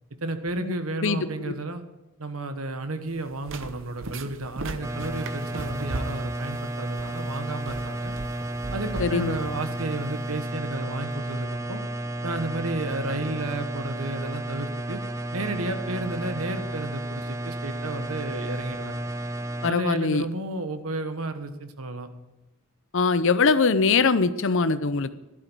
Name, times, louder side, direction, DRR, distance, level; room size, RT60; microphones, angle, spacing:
voice 1, 0.2-1.8 2.2-8.2 8.7-11.8 12.2-15.0 15.3-18.9 19.7-22.1, right 2 dB, 80° right, 8 dB, 1.3 m, -32 dB
sound 1, 3.1-10.5, right 2 dB, 60° right, 0.8 m, -39 dB
sound 2, 4.8-19.7, right 1 dB, 15° right, 0.5 m, -32 dB
voice 2, 9.0-9.4 19.6-20.3 22.9-25.1, left 4 dB, 60° left, 13 dB, 0.7 m, -22 dB
13.0 x 11.5 x 4.6 m, 1.1 s
head